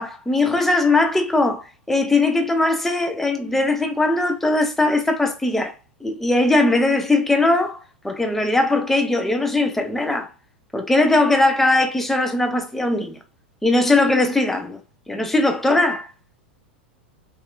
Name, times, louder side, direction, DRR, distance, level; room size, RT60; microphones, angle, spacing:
voice 1, 0.0-5.7 6.0-10.3 10.7-13.2 13.6-14.8 15.1-16.1, left 2 dB, 5° left, 0.5 m, -20 dB
2.7 x 2.4 x 2.3 m
figure-of-eight pair, 90°, 6 cm